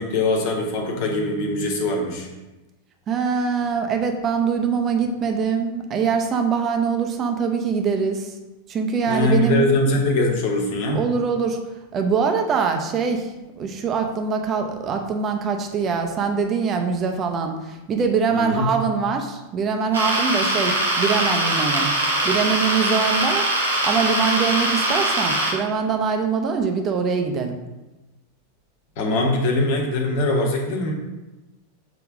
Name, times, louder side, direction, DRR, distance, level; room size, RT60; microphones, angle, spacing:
voice 1, 0.0-2.3 9.1-11.0 18.3-18.7 29.0-30.9, left 2 dB, 50° left, 1 dB, 1.4 m, -22 dB
voice 2, 3.1-8.3 8.7-9.6 10.9-11.6 11.9-13.3 13.6-21.9 22.2-23.5 23.8-27.6, right 5 dB, 30° right, 4 dB, 0.8 m, -23 dB
sound 1, 19.9-25.5, right 1 dB, 75° right, 2.0 m, -22 dB
7.2 x 3.5 x 4.8 m, 1.1 s
figure-of-eight pair, 90°, 0 cm